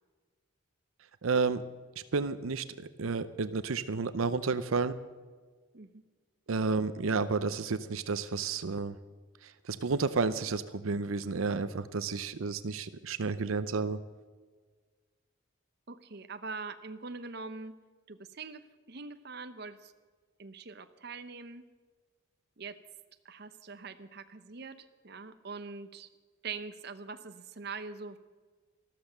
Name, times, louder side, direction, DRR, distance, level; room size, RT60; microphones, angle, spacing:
voice 1, 1.2-1.6 2.1-4.9 6.5-9.0 9.4-14.0, right 4 dB, 85° right, 13 dB, 0.6 m, -31 dB
voice 2, 15.9-17.7 18.1-19.9 20.4-21.7 22.6-22.8 23.2-26.1 26.4-28.2, right 4 dB, 50° right, 10 dB, 0.8 m, -43 dB
13.5 x 13.0 x 6.6 m, 1.4 s
head